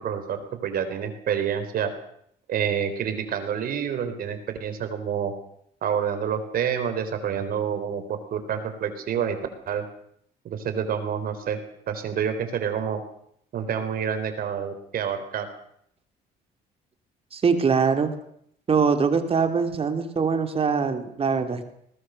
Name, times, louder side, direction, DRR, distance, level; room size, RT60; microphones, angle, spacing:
voice 1, 0.0-1.9 2.5-5.3 5.8-9.4 9.7-9.8 10.4-11.6 11.9-13.0 13.5-15.5, right 8 dB, 60° right, 9 dB, 4.0 m, -28 dB
voice 2, 17.3-18.1 18.7-21.6, right 5 dB, 35° right, 7 dB, 2.7 m, -23 dB
21.5 x 19.5 x 6.5 m, 0.69 s
cardioid pair, 110°, 17 cm